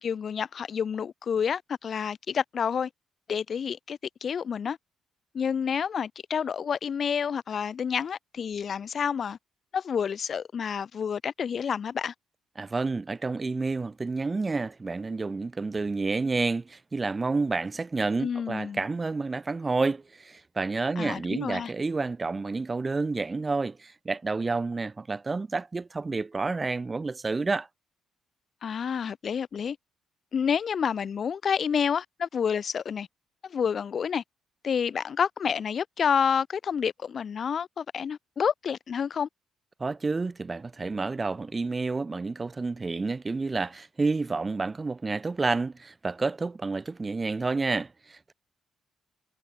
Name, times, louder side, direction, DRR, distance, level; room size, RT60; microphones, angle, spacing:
voice 1, 0.0-2.9 3.3-4.8 5.3-9.4 9.7-12.1 18.2-18.8 21.0-21.7 28.6-29.8 30.3-33.1 33.4-34.2 34.6-39.3, left 7 dB, 50° left, 2.9 m, -29 dB
voice 2, 12.6-27.7 39.8-48.3, right 3 dB, 25° right, 1.1 m, -29 dB
cardioid pair, 90°, 0 cm